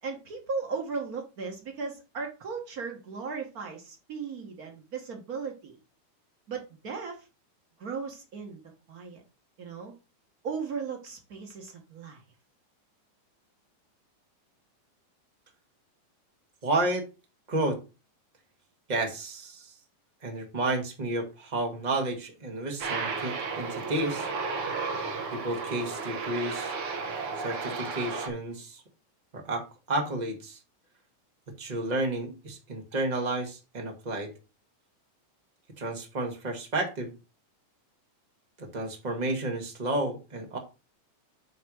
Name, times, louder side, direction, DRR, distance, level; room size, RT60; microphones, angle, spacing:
voice 1, 0.0-5.8 6.5-7.3 7.8-8.6 8.9-9.2 9.6-9.9 10.4-12.2, right 5 dB, 90° right, 2 dB, 0.8 m, -36 dB
voice 2, 16.6-17.1 17.5-17.8 18.9-19.7 20.2-24.3 25.3-26.7 27.4-28.8 29.3-30.6 31.6-34.3 35.8-37.1 38.6-40.6, right 2 dB, 20° right, 2 dB, 1.2 m, -31 dB
Aircraft, 22.8-28.3, right 4 dB, 55° right, 1.7 m, -33 dB
9.3 x 3.5 x 6.2 m, 0.30 s
omnidirectional pair, 3.7 m